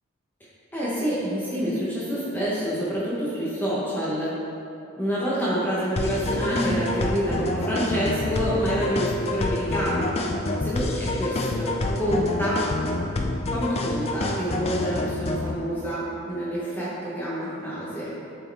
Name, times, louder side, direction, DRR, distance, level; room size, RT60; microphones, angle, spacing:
voice 1, 0.7-4.3 5.0-10.1 10.6-12.6 13.5-18.1, equal, 10° left, -8 dB, 0.9 m, -27 dB
sound 1, 6.0-15.6, left 2 dB, 30° left, 0.3 m, -27 dB
7.7 x 4.3 x 3.4 m, 2.8 s
head